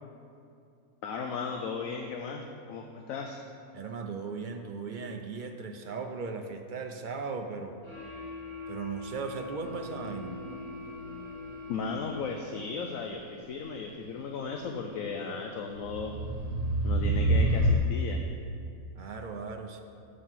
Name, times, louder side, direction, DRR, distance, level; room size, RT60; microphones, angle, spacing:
voice 1, 1.0-3.4 11.7-16.1 16.8-18.2, left 5 dB, 70° left, 3 dB, 1.0 m, -36 dB
voice 2, 3.7-7.8 8.7-10.3 19.0-19.8, right 5 dB, 60° right, 5 dB, 0.5 m, -37 dB
sound 1, 7.8-12.7, left 4 dB, 20° right, 1.8 m, -43 dB
sound 2, 9.6-11.5 12.8-12.9 15.8-17.8, right 1 dB, 85° right, 1.4 m, -28 dB
7.8 x 6.4 x 7.3 m, 2.5 s
omnidirectional pair, 1.6 m